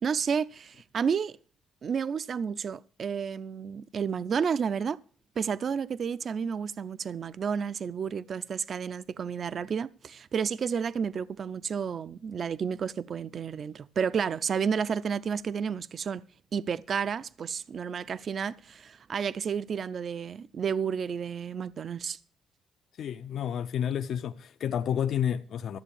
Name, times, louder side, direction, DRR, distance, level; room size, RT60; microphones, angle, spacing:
voice 1, 0.0-1.4 1.8-5.0 5.4-16.2 16.5-22.2, right 6 dB, 50° right, 0.5 m, -31 dB
voice 2, 23.0-25.8, left 9 dB, 65° left, 0.5 m, -30 dB
13.5 x 7.0 x 7.1 m
cardioid pair, 90°, 0 cm